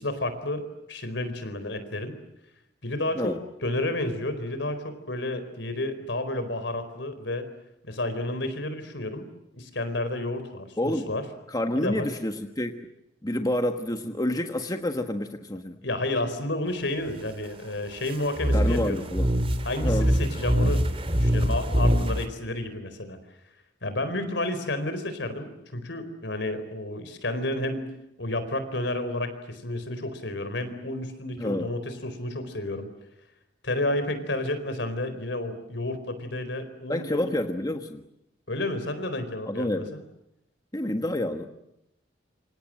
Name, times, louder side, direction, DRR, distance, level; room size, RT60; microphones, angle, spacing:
voice 1, 0.0-2.2 2.8-3.3 3.6-7.5 7.8-9.3 9.5-11.2 11.8-12.1 15.8-19.1 19.6-20.9 21.2-23.2 23.8-27.9 28.2-32.9 33.6-37.3 38.5-40.0, left 1 dB, 70° left, 10 dB, 4.4 m, -31 dB
voice 2, 10.8-11.1 11.5-12.8 13.2-15.8 18.5-19.3 19.8-20.1 31.4-31.7 36.9-38.0 39.4-39.9 40.7-41.5, left 1 dB, 20° left, 6 dB, 1.4 m, -28 dB
sound 1, 18.4-22.3, equal, 30° right, 3.0 m, -23 dB
28.0 x 26.0 x 7.7 m, 0.85 s
head